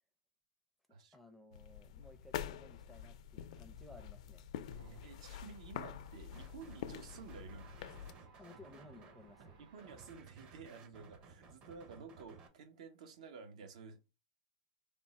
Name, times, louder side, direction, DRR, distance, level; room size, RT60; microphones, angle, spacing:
voice 1, 0.9-4.5 8.4-9.6, left 2 dB, ahead, 0.5 m, -58 dB
sound 1, 1.5-8.1, left 10 dB, 70° left, 0.4 m, -46 dB
sound 2, 4.6-10.1, right 3 dB, 55° right, 1.9 m, -64 dB
voice 2, 4.6-8.2 9.6-14.1, right 5 dB, 75° right, 0.8 m, -53 dB
sound 3, 6.3-6.8 7.1-12.5, right 5 dB, 30° right, 0.7 m, -58 dB
3.5 x 2.0 x 4.0 m
supercardioid pair, 145°, 4 cm